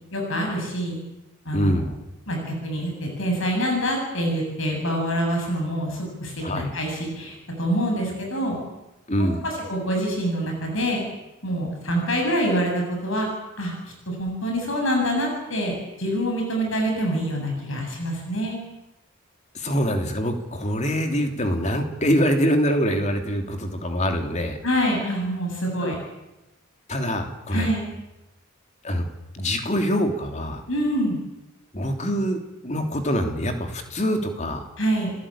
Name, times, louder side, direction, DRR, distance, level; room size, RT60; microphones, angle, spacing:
voice 1, 0.1-1.0 1.4-1.7 2.3-8.6 9.2-11.0 11.4-13.3 13.6-18.6 24.6-25.9 27.5-27.9 30.7-31.2 34.8-35.1, equal, 65° left, 1 dB, 7.6 m, -26 dB
voice 2, 1.5-2.0 6.4-6.7 9.1-9.4 19.5-24.6 25.8-25.9 26.9-27.7 28.8-29.1 29.3-30.6 31.7-34.7, equal, 35° left, 5 dB, 3.1 m, -24 dB
29.5 x 16.5 x 8.8 m, 0.99 s
head